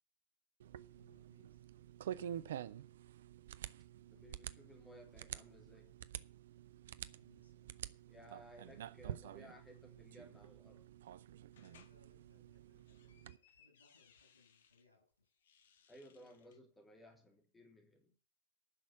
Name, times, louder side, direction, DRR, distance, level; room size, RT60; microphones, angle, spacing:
sound 1, 0.6-13.4, right 10 dB, 60° right, 0.6 m, -49 dB
voice 1, 0.9-1.7 2.0-2.4 6.9-7.7 11.5-15.4, left 2 dB, 80° left, 6.6 m, -72 dB
voice 2, 4.1-6.0 8.1-10.9 15.9-18.1, equal, 10° left, 2.9 m, -59 dB
sound 2, 11.5-12.0 12.6-14.8 15.3-16.6, left 7 dB, 60° left, 1.3 m, -68 dB
11.0 x 6.3 x 8.6 m
figure-of-eight pair, 90°, 0 cm